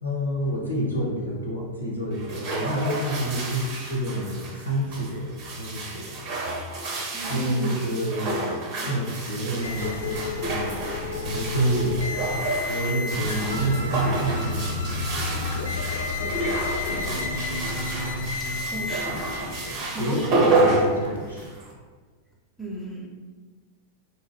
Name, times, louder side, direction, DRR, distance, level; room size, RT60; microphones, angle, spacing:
voice 1, 0.0-6.2 7.3-10.8 11.2-17.6 19.6-21.5, right 1 dB, 85° right, -5 dB, 0.7 m, -29 dB
sound 1, 2.1-21.7, right 2 dB, 40° right, 0.6 m, -30 dB
voice 2, 7.1-7.8 18.6-19.1 19.9-20.5 22.6-23.1, left 1 dB, 5° left, -2 dB, 0.4 m, -33 dB
sound 2, 9.6-21.5, left 3 dB, 65° left, 0.3 m, -31 dB
2.2 x 2.1 x 3.4 m, 1.4 s
figure-of-eight pair, 90°, 0 cm